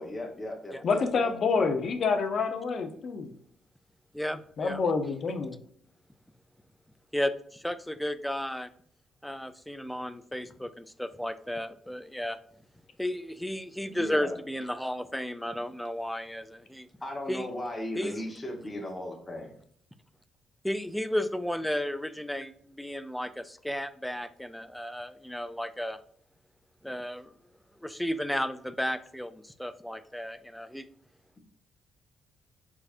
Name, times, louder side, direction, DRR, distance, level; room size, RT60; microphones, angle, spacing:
voice 1, 0.0-1.3 13.9-14.3 17.0-19.5, left 1 dB, 20° left, -1 dB, 1.2 m, -37 dB
voice 2, 0.8-3.3 4.6-5.5, left 4 dB, 55° left, 7 dB, 0.8 m, -27 dB
voice 3, 4.1-4.8 7.1-8.7 9.2-12.4 13.0-16.9 17.3-17.5 18.0-18.2 20.6-26.0 26.8-27.3 27.8-30.9, equal, 5° left, 13 dB, 0.4 m, -33 dB
4.7 x 4.2 x 2.6 m, 0.63 s
cardioid pair, 90°, 0 cm